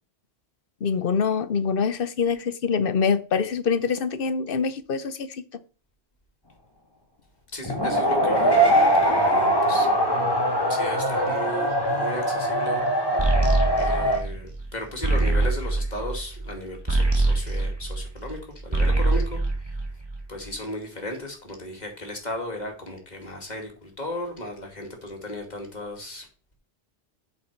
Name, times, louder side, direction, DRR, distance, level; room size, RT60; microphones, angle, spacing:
voice 1, 0.8-5.3, left 5 dB, 60° left, 0.9 m, -24 dB
voice 2, 7.5-9.9 10.7-12.8 13.7-19.4 20.3-26.3, left 1 dB, 40° left, 2.6 m, -35 dB
sound 1, 7.6-14.2, right 1 dB, 20° left, 2.1 m, -22 dB
sound 2, 13.2-18.4 18.6-20.4, right 2 dB, 25° right, 1.7 m, -24 dB
8.7 x 6.5 x 4.5 m
omnidirectional pair, 1.1 m